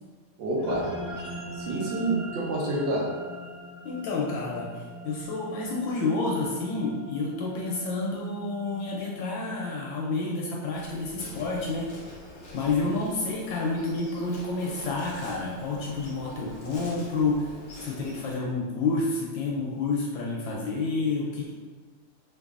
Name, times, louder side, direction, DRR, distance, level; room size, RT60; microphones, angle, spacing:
voice 1, 0.4-0.9 1.6-3.1, right 2 dB, 75° right, -4 dB, 1.2 m, -28 dB
sound 1, 0.6-11.2, equal, 35° right, 0.9 m, -42 dB
voice 2, 3.8-11.9 12.5-17.5 17.8-21.5, left 3 dB, 75° left, -3 dB, 1.2 m, -29 dB
Insect, 10.7-18.3, left 1 dB, 50° left, 0.8 m, -45 dB
4.5 x 2.6 x 2.4 m, 1.5 s
omnidirectional pair, 2.4 m